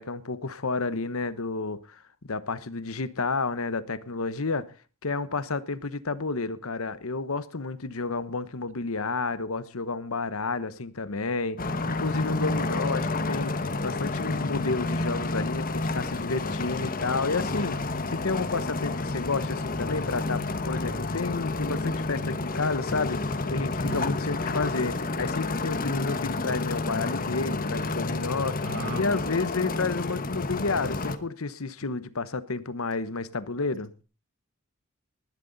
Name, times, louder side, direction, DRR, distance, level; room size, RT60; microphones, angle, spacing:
voice 1, 0.0-2.0 2.2-4.7 5.0-17.8 18.1-33.9, left 3 dB, 70° left, 1.1 m, -31 dB
sound 1, 11.6-31.2, left 3 dB, 40° left, 1.3 m, -30 dB
voice 2, 23.9-24.2 28.6-29.0 31.8-31.9, right 1 dB, 60° right, 2.0 m, -35 dB
19.5 x 12.0 x 4.1 m
head